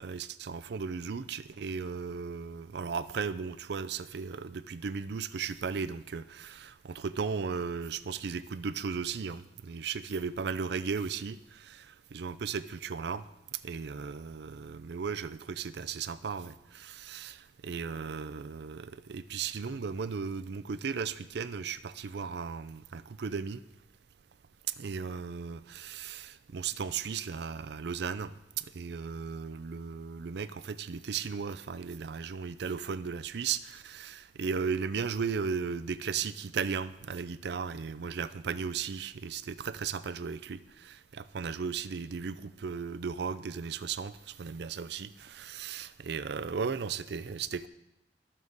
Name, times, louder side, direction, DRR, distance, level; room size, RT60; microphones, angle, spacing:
voice 1, 0.0-13.2 13.6-23.6 24.8-47.7, right 5 dB, 65° right, 15 dB, 0.5 m, -36 dB
12.5 x 7.4 x 4.0 m, 0.90 s
head